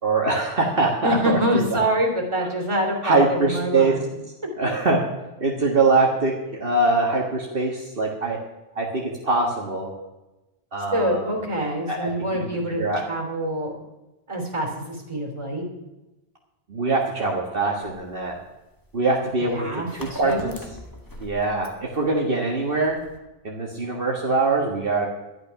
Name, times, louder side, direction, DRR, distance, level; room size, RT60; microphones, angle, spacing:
voice 1, 0.0-1.8 3.0-4.0 4.6-5.0 5.4-8.4 8.8-9.9 10.7-11.2 11.9-13.1 16.7-18.4 18.9-20.5 21.2-23.0 23.4-25.1, right 3 dB, 60° right, -1 dB, 1.8 m, -23 dB
voice 2, 1.0-4.1 10.9-13.8 14.3-15.6 19.5-20.6, equal, 30° right, 0 dB, 3.2 m, -26 dB
sound 1, 17.8-23.2, left 1 dB, 20° left, 1.7 m, -42 dB
12.0 x 11.0 x 5.8 m, 1.0 s
omnidirectional pair, 1.1 m